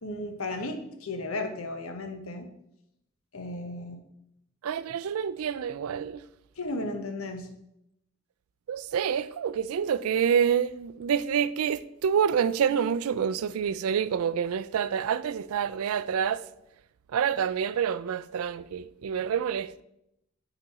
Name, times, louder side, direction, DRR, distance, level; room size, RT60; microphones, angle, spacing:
voice 1, 0.0-2.5 3.3-4.0 6.6-7.5, left 2 dB, 80° left, 1.0 m, -34 dB
voice 2, 4.6-6.2 8.7-16.4 17.1-19.8, right 7 dB, 90° right, 0.4 m, -27 dB
8.9 x 4.1 x 4.1 m
head